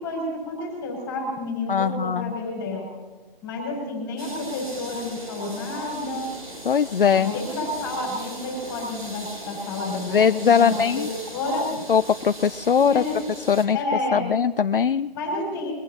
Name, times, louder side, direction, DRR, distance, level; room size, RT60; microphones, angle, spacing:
voice 1, 0.0-2.9 3.4-6.3 7.1-11.1 11.3-11.7 12.8-13.1 13.7-14.2 15.1-15.7, left 2 dB, 10° left, -1 dB, 4.6 m, -30 dB
voice 2, 1.7-2.4 6.6-7.3 10.1-11.1 11.6-13.0 13.5-13.8 14.1-15.1, left 7 dB, 65° left, 11 dB, 0.5 m, -20 dB
sound 1, 4.2-13.6, right 1 dB, 90° right, 4.2 m, -39 dB
23.0 x 15.0 x 2.8 m, 1.2 s
figure-of-eight pair, 165°, 29 cm